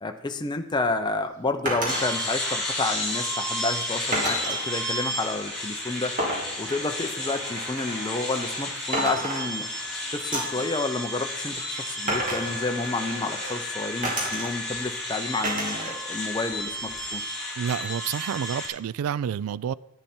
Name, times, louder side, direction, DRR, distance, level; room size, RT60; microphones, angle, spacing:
voice 1, 0.0-6.1 6.6-9.7 10.1-17.2, left 3 dB, 20° left, 6 dB, 0.6 m, -30 dB
sound 1, 1.7-2.1 4.1-4.7 6.2-8.7 8.9-9.9 10.3-10.6 12.1-13.6 14.0-14.8 15.4-16.0 16.3-17.1, right 1 dB, 35° right, 2.7 m, -31 dB
sound 2, 1.9-18.7, left 1 dB, ahead, 4.3 m, -32 dB
voice 2, 17.6-19.7, right 8 dB, 70° right, 21 dB, 0.3 m, -29 dB
10.5 x 9.3 x 4.4 m, 0.87 s
head